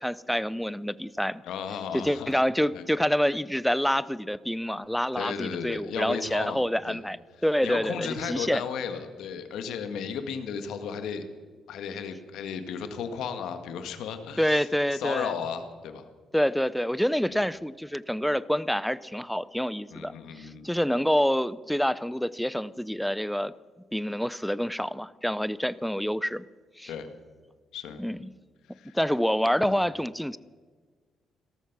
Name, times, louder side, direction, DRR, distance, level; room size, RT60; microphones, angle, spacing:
voice 1, 0.0-1.4 1.9-7.2 7.4-8.6 14.4-15.3 16.3-23.5 23.9-26.4 26.8-26.9 28.0-28.3 28.9-30.4, equal, ahead, 18 dB, 0.5 m, -27 dB
voice 2, 1.4-2.4 2.7-2.8 5.1-7.0 7.6-11.3 11.7-16.1 19.9-20.8 26.9-27.1 27.7-28.0 28.7-29.0 29.6-29.7, left 7 dB, 85° left, 8 dB, 1.7 m, -35 dB
17.5 x 13.5 x 6.0 m, 1.5 s
cardioid pair, 120°, 0 cm